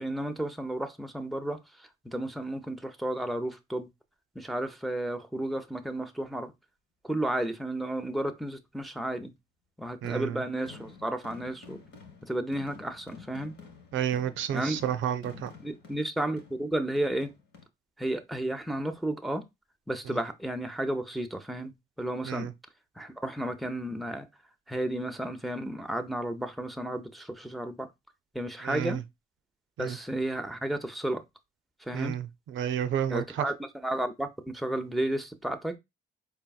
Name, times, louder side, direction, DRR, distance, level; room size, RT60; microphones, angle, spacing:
voice 1, 0.0-1.6 2.1-3.9 4.4-6.5 7.0-9.3 9.8-11.8 12.2-13.5 14.5-14.8 15.6-17.3 18.0-19.4 19.9-21.7 22.0-22.5 23.0-24.3 24.7-27.9 28.3-29.0 29.8-31.2 31.8-32.2 33.1-33.5 33.8-35.8, right 1 dB, ahead, 0.6 m, -32 dB
sound 1, 10.0-17.6, left 5 dB, 75° left, 1.7 m, -50 dB
voice 2, 10.0-10.4 13.9-15.5 22.3-22.5 28.6-29.0 29.8-30.0 31.9-33.5, right 10 dB, 75° right, 0.5 m, -31 dB
4.5 x 3.4 x 2.3 m
cardioid pair, 90°, 20 cm